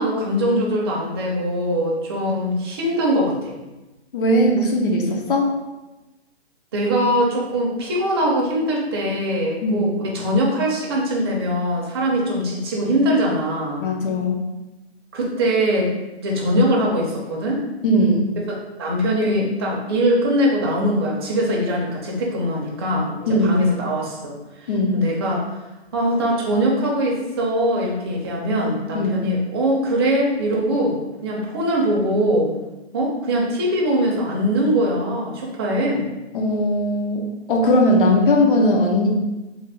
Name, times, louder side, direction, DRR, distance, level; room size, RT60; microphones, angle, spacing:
voice 1, 0.0-3.5 6.7-13.9 15.1-15.9 16.2-17.6 18.8-25.4 25.9-32.5 32.9-36.1, equal, 25° right, -2 dB, 0.4 m, -22 dB
voice 2, 4.1-5.5 9.6-9.9 13.8-14.4 17.8-18.3 23.3-23.6 24.7-25.1 28.9-29.2 36.3-39.1, left 1 dB, 55° left, 1 dB, 0.7 m, -19 dB
2.7 x 2.2 x 3.3 m, 1.1 s
hypercardioid pair, 150°, 33 cm